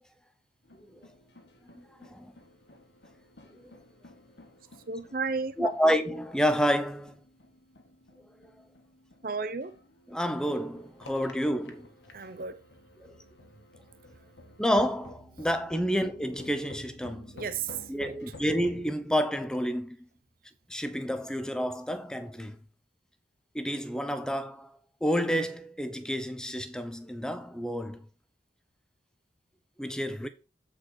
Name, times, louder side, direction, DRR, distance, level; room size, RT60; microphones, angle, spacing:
sound 1, 0.6-18.9, left 2 dB, 70° left, 1.4 m, -52 dB
voice 1, 1.7-2.3 3.5-3.6 5.6-7.1 10.1-11.9 13.0-13.1 14.6-17.3 17.9-20.0 20.7-22.6 23.5-24.7 25.0-28.0 29.8-30.3, equal, 5° left, 0.6 m, -29 dB
voice 2, 4.9-5.7 9.2-9.8 12.1-12.6 17.3-18.1, right 5 dB, 50° right, 0.7 m, -33 dB
7.9 x 4.8 x 4.4 m
head